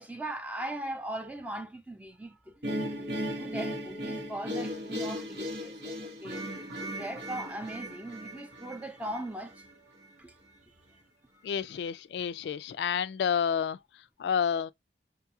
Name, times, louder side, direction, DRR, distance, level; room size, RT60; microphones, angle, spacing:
voice 1, 0.0-6.4 6.8-9.6 10.2-10.3 10.6-10.7, right 1 dB, 10° right, 0.5 m, -40 dB
sound 1, 2.6-9.7, equal, 90° right, 1.4 m, -37 dB
voice 2, 11.4-13.8 14.2-14.7, left 7 dB, 75° left, 0.3 m, -29 dB
5.3 x 2.3 x 2.8 m
head